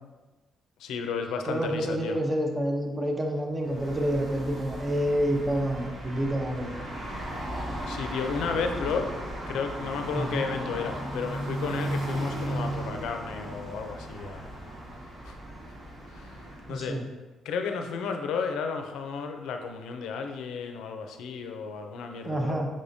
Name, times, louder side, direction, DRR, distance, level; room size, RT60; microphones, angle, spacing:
voice 1, 0.8-2.2 7.8-9.1 9.5-14.6 15.2-15.3 16.1-16.3 16.7-17.0 17.4-22.6, left 5 dB, 85° left, 5 dB, 0.4 m, -33 dB
voice 2, 1.5-6.8 10.1-10.4 16.7-17.0 22.2-22.7, right 1 dB, 25° right, 2 dB, 0.6 m, -28 dB
sound 1, 3.6-16.9, right 1 dB, 55° right, 1.2 m, -36 dB
5.2 x 3.4 x 2.7 m, 1.2 s
cardioid pair, 90°, 0 cm